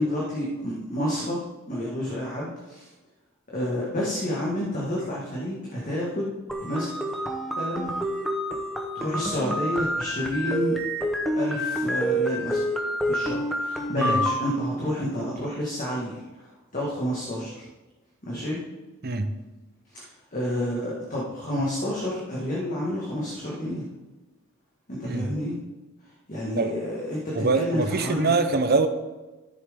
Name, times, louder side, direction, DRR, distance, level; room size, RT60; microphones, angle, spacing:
voice 1, 0.0-1.4 1.7-2.9 3.5-6.3 6.6-6.9 7.6-7.9 8.9-10.8 11.4-12.6 13.0-16.5 16.7-17.7 18.2-18.6 19.9-20.1 20.3-23.8 24.9-25.6 26.3-28.3, equal, 40° left, 1.8 m, -29 dB
sound 1, 6.5-14.5, equal, ahead, 1.0 m, -28 dB
voice 2, 27.3-28.9, right 3 dB, 50° right, 0.8 m, -24 dB
13.5 x 7.1 x 3.7 m
head